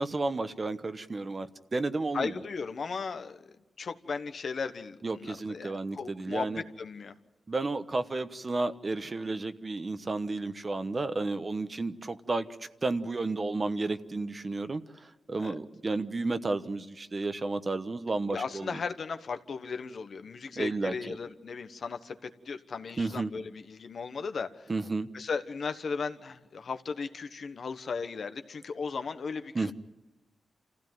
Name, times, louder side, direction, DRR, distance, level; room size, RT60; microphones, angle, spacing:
voice 1, 0.0-2.3 5.0-6.6 7.5-12.5 12.8-18.7 20.6-21.2 23.0-23.3 24.7-25.1 29.5-29.7, right 3 dB, 35° right, 1.1 m, -32 dB
voice 2, 2.1-3.4 3.8-7.2 15.4-15.5 18.3-24.7 25.1-29.7, left 5 dB, 65° left, 1.3 m, -36 dB
27.0 x 15.5 x 9.4 m
cardioid pair, 80°, 0 cm